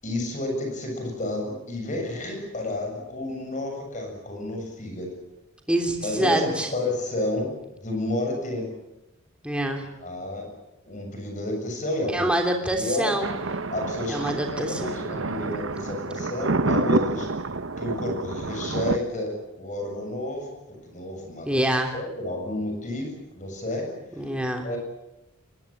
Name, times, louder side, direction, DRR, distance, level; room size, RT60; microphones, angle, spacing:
voice 1, 0.0-5.1 6.0-7.5 7.8-8.6 10.0-10.5 10.8-12.3 12.7-13.1 13.7-17.3 17.8-19.3 19.6-21.6 21.9-23.9 24.2-24.3 24.6-24.8, left 1 dB, 35° left, 3 dB, 7.2 m, -30 dB
voice 2, 5.7-6.7 9.4-9.9 12.1-13.3 14.1-15.0 21.4-21.9 24.1-24.7, right 1 dB, 5° right, 3 dB, 3.1 m, -25 dB
Thunder, 13.2-19.0, right 3 dB, 60° right, 1.0 m, -28 dB
23.0 x 21.0 x 8.8 m, 0.91 s
head